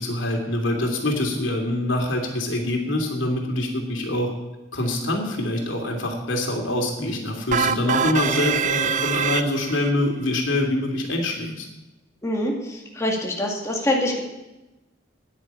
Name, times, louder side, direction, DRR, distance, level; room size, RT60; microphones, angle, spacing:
voice 1, 0.0-4.3 4.7-11.7, left 1 dB, 85° left, 2 dB, 2.8 m, -25 dB
sound 1, 7.5-9.9, right 7 dB, 40° right, 0.5 m, -24 dB
voice 2, 12.2-14.2, left 1 dB, 15° left, -1 dB, 2.1 m, -25 dB
9.9 x 9.7 x 8.8 m, 1.0 s
head